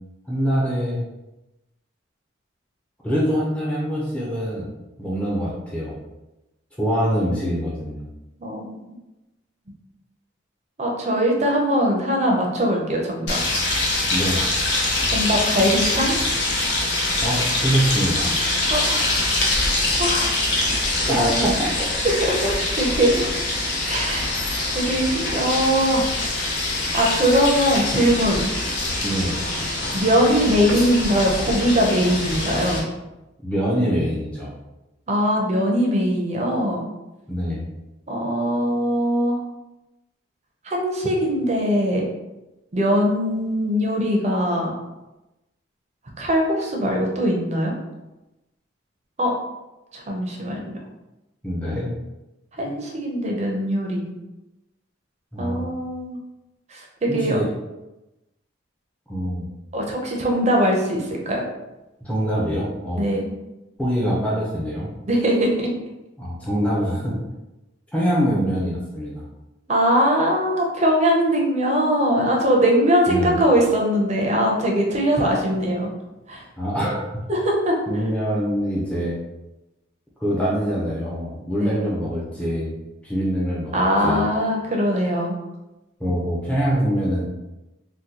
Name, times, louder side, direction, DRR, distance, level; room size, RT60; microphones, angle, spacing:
voice 1, 0.3-1.0 3.0-4.7 5.0-6.0 6.8-8.1 14.1-14.4 17.2-18.4 21.1-21.5 21.8-21.9 29.0-29.4 33.4-34.5 37.3-37.7 51.4-51.9 55.3-55.7 57.1-57.5 59.1-59.5 62.0-63.1 63.8-64.9 66.2-67.2 67.9-69.2 73.1-73.4 76.6-77.0 77.9-79.2 80.2-82.7 83.0-84.2 86.0-87.3, equal, 5° left, -7 dB, 0.6 m, -24 dB
voice 2, 8.4-8.9 10.8-13.4 15.1-16.2 18.7-19.5 20.0-20.3 21.1-21.5 22.0-23.3 23.9-24.4 24.7-26.1 26.9-28.5 29.9-32.8 35.1-36.9 38.1-39.4 40.6-42.1 42.7-44.7 46.2-47.7 49.2-49.3 49.9-50.7 52.5-54.1 55.4-56.2 56.7-57.4 59.7-61.4 63.0-63.3 65.1-65.7 69.7-75.9 76.3-76.4 77.3-77.8 81.6-81.9 83.7-85.4, equal, 35° right, 0 dB, 0.6 m, -21 dB
sound 1, 13.3-32.8, left 2 dB, 65° left, 0.7 m, -24 dB
3.6 x 2.2 x 2.8 m, 1.0 s
head